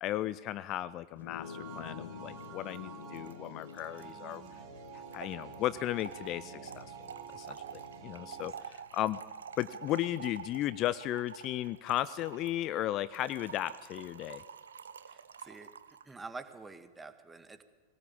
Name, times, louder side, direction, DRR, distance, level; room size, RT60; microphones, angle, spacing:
voice 1, 0.0-4.4 4.9-6.9 7.3-7.6 8.0-9.2 9.6-14.4, left 13 dB, 35° left, 17 dB, 0.6 m, -35 dB
sound 1, 1.1-10.7, left 8 dB, 65° left, 1.0 m, -51 dB
sound 2, 1.4-8.5, right 7 dB, 40° right, 3.6 m, -49 dB
Trickle dribble / Fill (with liquid), 2.4-2.5 2.7-2.8 3.0-16.1, right 7 dB, 70° right, 0.9 m, -49 dB
voice 2, 15.0-15.7 16.0-17.6, right 3 dB, 10° right, 9 dB, 1.8 m, -47 dB
22.5 x 18.0 x 8.6 m, 1.5 s
figure-of-eight pair, 90°, 0 cm